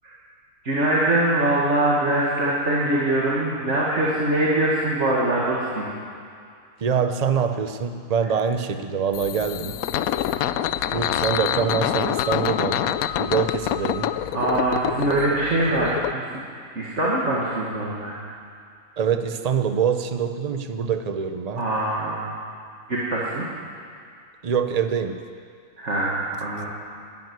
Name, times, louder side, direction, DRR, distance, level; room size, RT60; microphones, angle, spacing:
voice 1, 0.6-5.9 14.3-16.4 16.8-18.1 21.5-22.4 22.9-23.5 25.8-26.7, right 1 dB, 45° right, -6 dB, 2.2 m, -23 dB
voice 2, 6.8-9.8 10.9-14.1 19.0-21.6 24.4-25.2, right 7 dB, 60° right, 8 dB, 0.4 m, -24 dB
sound 1, 9.1-16.1, left 11 dB, 70° left, 0.9 m, -26 dB
13.0 x 11.0 x 9.4 m, 2.3 s
omnidirectional pair, 1.8 m